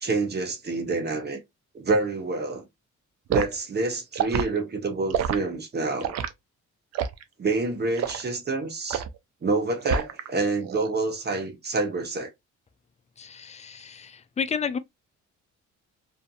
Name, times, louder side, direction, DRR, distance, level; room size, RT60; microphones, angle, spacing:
voice 1, 0.0-1.4 1.7-2.6 3.3-6.2 7.4-9.0 9.4-12.3, right 3 dB, 35° right, 0.8 m, -27 dB
Liquid, 3.3-3.5 4.1-4.5 5.1-5.4 6.0-6.3 6.9-7.2 8.0-8.2 8.9-9.2 9.8-10.3 10.6-10.9, right 8 dB, 60° right, 0.5 m, -27 dB
voice 2, 13.2-14.1 14.4-14.8, left 6 dB, 25° left, 0.3 m, -31 dB
2.6 x 2.5 x 2.3 m
cardioid pair, 90°, 30 cm